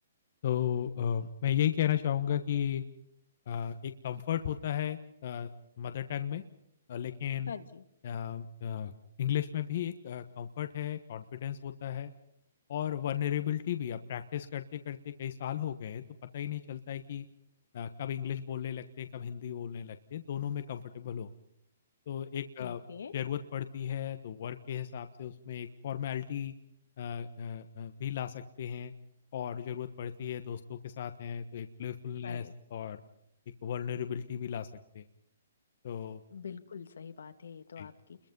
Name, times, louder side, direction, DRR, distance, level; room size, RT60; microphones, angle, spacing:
voice 1, 0.4-2.8 3.5-5.5 5.8-6.4 6.9-7.5 8.0-8.9 9.2-12.1 12.7-16.0 16.3-17.3 17.7-21.3 22.1-22.8 23.1-26.5 27.0-28.9 29.3-33.0 33.6-34.7 34.9-35.0 35.8-36.2 37.8-37.9, left 9 dB, 45° left, 9 dB, 1.2 m, -35 dB
voice 2, 7.5-7.8 22.6-23.1 32.2-32.5 36.3-38.2, left 6 dB, 85° left, 8 dB, 2.1 m, -44 dB
30.0 x 22.0 x 5.4 m, 0.72 s
hypercardioid pair, 170°, 0 cm